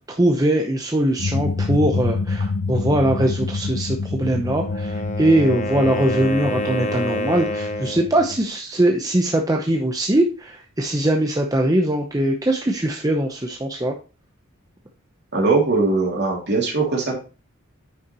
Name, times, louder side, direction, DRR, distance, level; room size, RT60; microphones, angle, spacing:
voice 1, 0.1-13.9, right 1 dB, 15° right, 2 dB, 0.7 m, -21 dB
sound 1, 1.2-8.4, left 3 dB, 70° left, 0.6 m, -27 dB
Wind instrument woodwind instrument, 4.5-8.1, left 2 dB, 35° left, 0.9 m, -28 dB
voice 2, 15.3-17.2, right 3 dB, 55° right, -1 dB, 2.7 m, -20 dB
9.8 x 5.9 x 3.0 m, 0.33 s
head